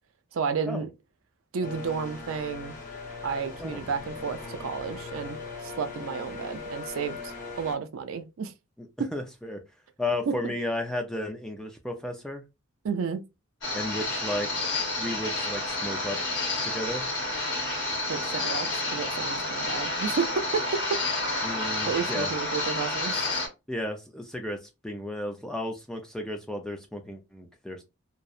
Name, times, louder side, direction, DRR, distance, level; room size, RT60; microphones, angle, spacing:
voice 1, 0.3-0.9 1.5-2.8 3.2-8.5 10.4-10.5 12.8-13.2 18.1-20.3 20.5-20.6 21.9-23.3, right 6 dB, 75° right, 0.4 m, -32 dB
sound 1, 1.6-7.8, left 4 dB, 40° left, 0.6 m, -40 dB
voice 2, 8.8-9.6 10.0-12.4 13.7-14.6 15.0-17.1 21.4-22.3 23.7-27.8, left 1 dB, 5° left, 0.3 m, -34 dB
sound 2, 13.6-23.5, left 2 dB, 60° left, 0.9 m, -30 dB
2.6 x 2.0 x 2.4 m
head